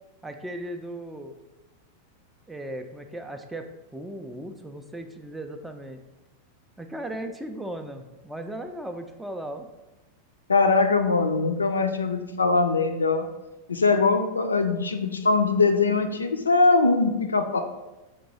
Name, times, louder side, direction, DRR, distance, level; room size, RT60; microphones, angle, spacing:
voice 1, 0.2-1.3 2.5-6.0 6.8-9.7, right 1 dB, 5° right, 6 dB, 0.3 m, -37 dB
voice 2, 10.5-13.3 13.7-17.6, left 3 dB, 75° left, 6 dB, 0.3 m, -22 dB
4.5 x 2.3 x 4.1 m, 1.0 s
figure-of-eight pair, 90°, 0 cm